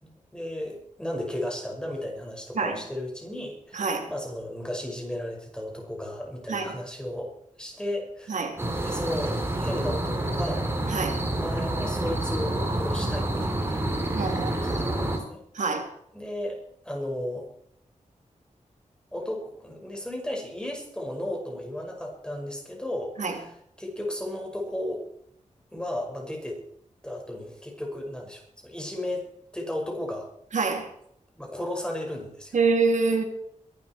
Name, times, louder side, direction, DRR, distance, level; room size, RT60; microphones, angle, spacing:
voice 1, 0.0-8.5 8.8-14.0 14.4-15.4 16.1-16.6 16.8-17.5 19.1-25.0 25.7-26.6 27.0-29.2 29.5-30.3 31.4-32.6, left 1 dB, 5° left, 5.5 m, -34 dB
voice 2, 3.7-4.1 6.5-6.7 8.3-8.5 10.9-11.2 14.1-14.8 15.5-15.9 23.2-23.4 30.5-30.9 32.5-33.2, right 4 dB, 70° right, 3.2 m, -26 dB
sound 1, 8.6-15.2, right 1 dB, 20° right, 3.5 m, -28 dB
23.0 x 12.0 x 4.6 m
wide cardioid pair, 150°, 13 cm